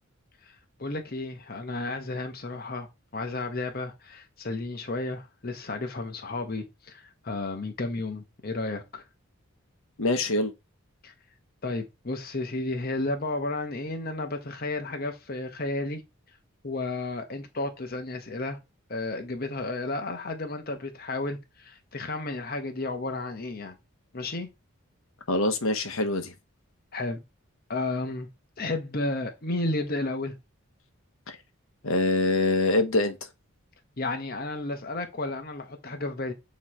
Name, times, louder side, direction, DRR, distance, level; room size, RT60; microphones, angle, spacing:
voice 1, 0.8-2.9 3.1-9.0 11.0-11.1 11.6-16.0 16.6-18.6 18.9-23.8 24.1-24.5 26.9-27.2 27.7-28.3 28.6-30.3 34.0-36.3, left 2 dB, 45° left, 1.0 m, -32 dB
voice 2, 10.0-10.5 25.3-26.3 31.3-31.4 31.8-33.1, left 2 dB, 70° left, 1.0 m, -24 dB
8.2 x 3.2 x 4.3 m
head